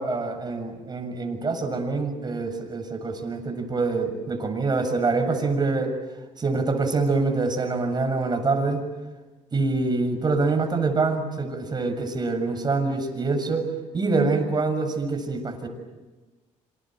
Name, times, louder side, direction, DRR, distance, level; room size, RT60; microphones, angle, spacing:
voice 1, 0.0-6.0 6.4-8.8 9.5-15.7, right 3 dB, 30° right, 6 dB, 7.0 m, -25 dB
27.5 x 27.0 x 7.8 m, 1.2 s
cardioid pair, 90°, 13 cm